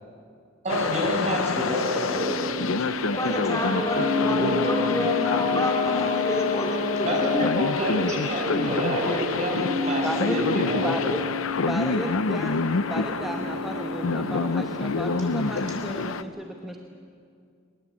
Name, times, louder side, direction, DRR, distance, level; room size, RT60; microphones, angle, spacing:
voice 1, 0.6-2.4 4.4-4.6 7.0-10.9, equal, 35° right, -1 dB, 6.8 m, -27 dB
sound 1, 0.7-16.2, left 4 dB, 75° left, 0.7 m, -28 dB
sound 2, 2.1-16.2, left 4 dB, 60° right, 4.4 m, -33 dB
voice 2, 2.8-7.3 8.8-9.2, left 1 dB, 15° left, -2 dB, 2.9 m, -29 dB
Brass instrument, 3.1-7.6, left 4 dB, 50° left, 8.0 m, -29 dB
voice 3, 10.0-10.4 10.8-11.3 11.7-12.6 12.9-16.8, equal, ahead, 2 dB, 1.1 m, -34 dB
21.5 x 20.5 x 8.5 m, 2.3 s
head